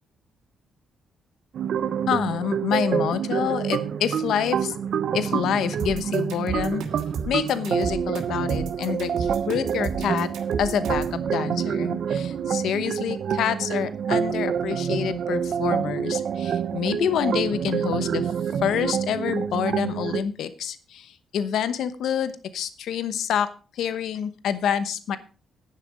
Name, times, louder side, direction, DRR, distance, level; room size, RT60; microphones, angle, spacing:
sound 1, 1.5-20.2, right 7 dB, 55° right, 0.8 m, -27 dB
voice 1, 2.1-6.8 7.3-10.3 10.6-18.3 18.6-23.5 23.7-25.2, left 8 dB, 70° left, 12 dB, 1.0 m, -27 dB
sound 2, 5.8-11.2, right 6 dB, 85° right, 2.8 m, -33 dB
11.0 x 10.5 x 4.9 m, 0.36 s
cardioid pair, 165°, 0 cm